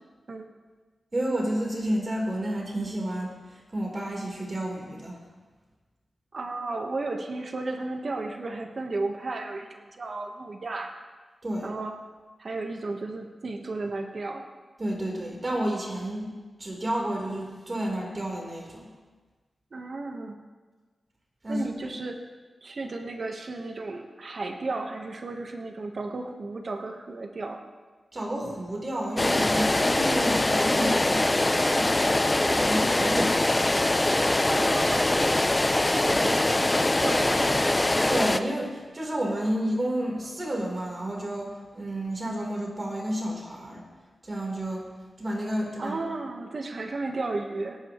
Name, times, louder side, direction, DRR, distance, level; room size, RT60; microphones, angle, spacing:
voice 1, 1.1-5.2 11.4-11.7 14.8-16.3 16.6-18.9 21.4-21.7 28.1-32.1 32.4-33.7 38.1-43.8 44.2-44.9 45.2-46.0, right 1 dB, 35° right, -1 dB, 3.6 m, -30 dB
voice 2, 6.3-10.9 11.6-12.0 12.4-14.5 19.7-20.4 21.5-22.2 22.6-27.6 34.5-35.3 35.9-37.8 45.8-47.8, right 3 dB, 60° right, 4 dB, 1.2 m, -34 dB
sound 1, 29.2-38.4, left 2 dB, 25° left, 0.5 m, -23 dB
18.5 x 10.5 x 3.1 m, 1.3 s
cardioid pair, 70°, 0 cm